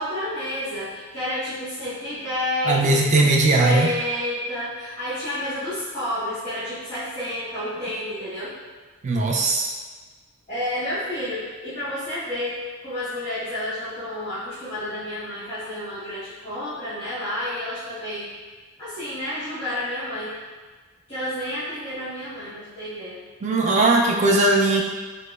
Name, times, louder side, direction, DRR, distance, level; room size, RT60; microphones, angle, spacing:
voice 1, 0.0-8.5 10.5-18.3 18.8-20.4 21.1-23.2, left 1 dB, 20° left, -15 dB, 1.2 m, -30 dB
voice 2, 2.7-3.9 9.0-9.7 23.4-24.8, right 2 dB, 35° right, 0 dB, 0.3 m, -19 dB
4.9 x 2.1 x 2.3 m, 1.4 s
head